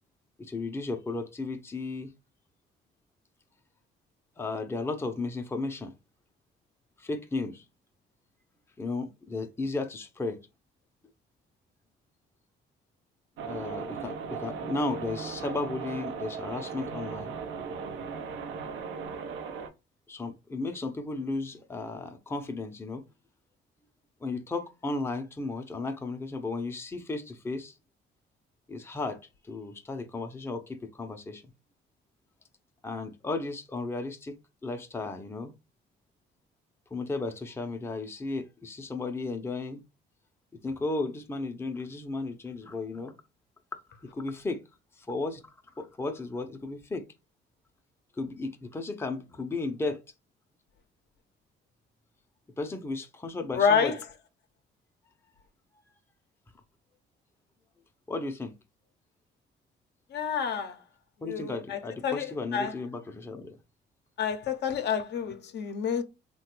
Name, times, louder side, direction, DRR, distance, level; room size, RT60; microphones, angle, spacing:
voice 1, 0.4-2.1 4.4-5.9 7.0-7.6 8.8-10.4 13.4-17.3 20.1-23.0 24.2-27.7 28.7-29.2 29.4-31.4 32.8-34.4 34.6-35.5 36.9-39.8 40.6-43.1 44.0-44.6 45.0-45.4 45.8-47.1 48.2-50.0 52.6-53.9 58.1-58.5 61.2-63.5, left 3 dB, 10° left, 0.5 m, -34 dB
sound 1, 13.4-19.7, right 5 dB, 85° right, 0.5 m, -37 dB
voice 2, 53.5-54.0 60.1-60.8 61.3-62.7 64.2-66.0, left 7 dB, 60° left, 0.5 m, -28 dB
3.1 x 2.2 x 3.0 m
cardioid pair, 90°, 20 cm